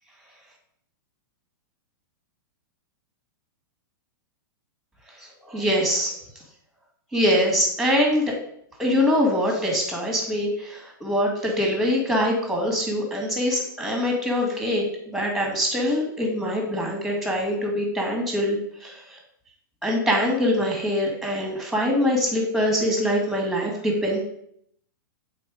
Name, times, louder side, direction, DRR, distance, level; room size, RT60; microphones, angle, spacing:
voice 1, 5.2-6.2 7.1-8.3 8.8-19.2 19.8-24.2, equal, ahead, 0 dB, 2.1 m, -24 dB
7.6 x 4.3 x 5.0 m, 0.70 s
hypercardioid pair, 140°, 11 cm